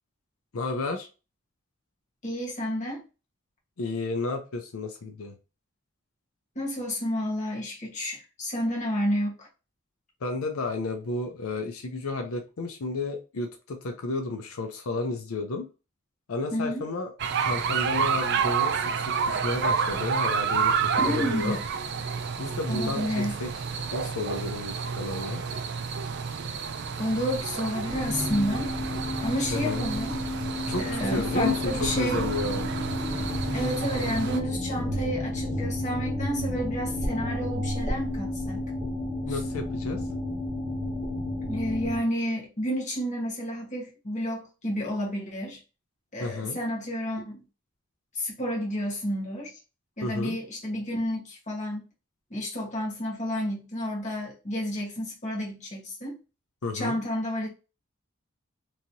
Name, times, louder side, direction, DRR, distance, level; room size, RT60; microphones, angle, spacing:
voice 1, 0.5-1.1 3.8-5.3 10.2-15.7 16.3-17.1 17.4-21.6 22.4-23.5 23.9-25.4 29.5-29.9 30.7-30.8 31.1-32.6 39.3-40.0 46.2-46.6 50.0-50.4 56.6-57.0, left 3 dB, 90° left, 0.6 m, -32 dB
voice 2, 2.2-3.0 6.5-9.5 16.5-16.8 21.0-21.6 22.7-23.4 27.0-28.7 29.2-30.2 30.8-32.2 33.5-38.7 39.3-39.4 41.4-45.6 46.1-47.4 48.1-49.6 50.0-51.8 52.3-56.2 56.7-57.5, equal, 35° left, 1.2 m, -30 dB
sound 1, 17.2-34.4, right 6 dB, 55° right, 0.4 m, -30 dB
sound 2, 27.9-42.0, left 1 dB, 10° right, 1.0 m, -31 dB
3.1 x 2.8 x 2.6 m
head